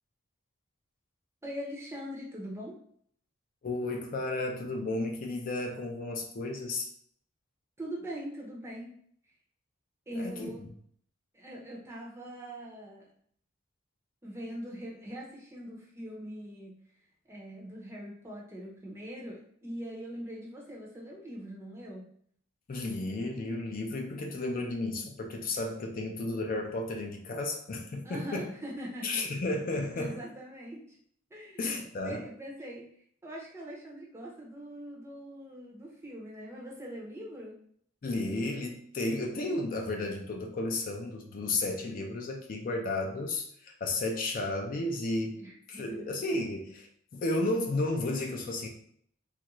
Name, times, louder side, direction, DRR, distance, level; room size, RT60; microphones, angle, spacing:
voice 1, 1.4-2.8 7.8-8.9 10.1-10.6 11.3-13.1 14.2-16.8 17.3-22.0 28.0-29.2 30.0-31.0 31.3-31.6 32.0-32.8 33.2-37.6 45.4-46.1, equal, 15° right, -3 dB, 0.6 m, -42 dB
voice 2, 3.6-6.9 10.1-10.7 22.7-28.5 29.0-30.2 31.6-32.2 38.0-45.4 45.7-46.9 47.1-48.7, left 2 dB, 45° left, 2 dB, 0.4 m, -33 dB
3.1 x 2.4 x 2.9 m, 0.63 s
head